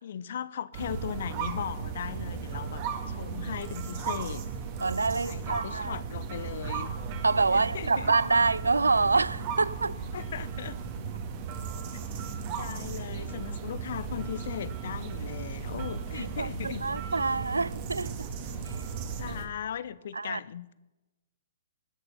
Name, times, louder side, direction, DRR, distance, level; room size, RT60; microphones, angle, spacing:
voice 1, 0.0-4.4 5.2-6.9 7.5-8.1 10.1-10.8 12.6-16.8 19.0-20.7, left 9 dB, 60° left, 0.7 m, -38 dB
sound 1, 0.7-19.5, right 6 dB, 40° right, 2.1 m, -36 dB
voice 2, 4.8-6.0 7.2-10.0 16.1-18.3 20.1-20.4, right 3 dB, 85° right, 0.4 m, -26 dB
20.5 x 6.8 x 5.5 m
figure-of-eight pair, 125°, 0 cm